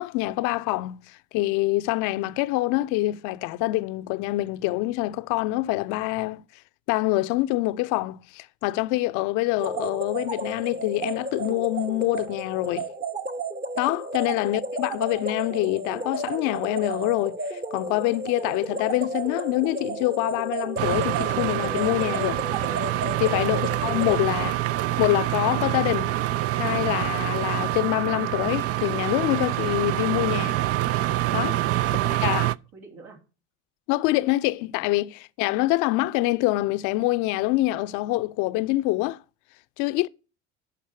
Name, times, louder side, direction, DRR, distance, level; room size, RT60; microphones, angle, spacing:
voice 1, 0.0-6.4 6.9-12.9 13.8-22.4 23.2-24.5 25.0-26.1 26.5-30.6 31.3-31.6 32.1-32.5 33.9-39.2 39.8-40.1, left 18 dB, 60° left, 0.7 m, -25 dB
sound 1, 9.6-24.2, right 2 dB, 25° right, 1.0 m, -33 dB
sound 2, 20.8-32.6, right 14 dB, 45° right, 0.5 m, -26 dB
voice 2, 31.8-33.2, right 3 dB, 75° right, 3.5 m, -49 dB
12.5 x 4.4 x 7.0 m
hypercardioid pair, 65°, 34 cm